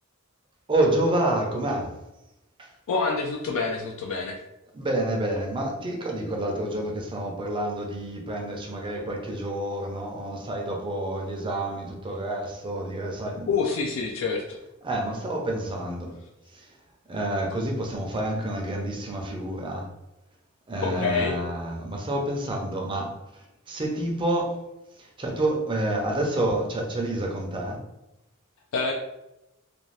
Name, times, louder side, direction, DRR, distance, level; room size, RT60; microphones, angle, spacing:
voice 1, 0.7-1.9 2.6-2.7 4.7-13.5 14.8-16.1 16.5-16.7 17.1-19.9 20.7-24.6 25.0-27.8, right 1 dB, 25° right, 0 dB, 0.5 m, -28 dB
voice 2, 2.9-4.4 13.5-14.6 20.8-21.4 28.7-28.9, left 4 dB, 65° left, 0 dB, 0.3 m, -27 dB
2.5 x 2.3 x 3.1 m, 0.92 s
head